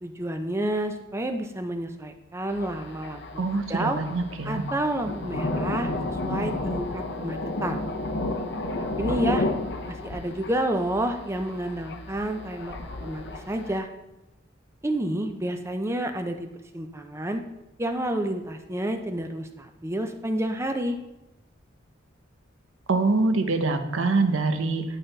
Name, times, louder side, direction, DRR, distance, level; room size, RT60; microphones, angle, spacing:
voice 1, 0.0-3.2 3.7-4.0 4.4-7.8 8.8-9.5 9.9-13.9 14.8-16.5 16.7-17.4 17.8-21.0, right 1 dB, 15° right, 6 dB, 0.5 m, -29 dB
Thunder, 2.5-13.8, left 2 dB, 60° left, 0.7 m, -32 dB
voice 2, 3.4-4.6 22.9-24.8, right 3 dB, 85° right, 7 dB, 0.8 m, -24 dB
11.0 x 3.9 x 4.0 m, 0.95 s
head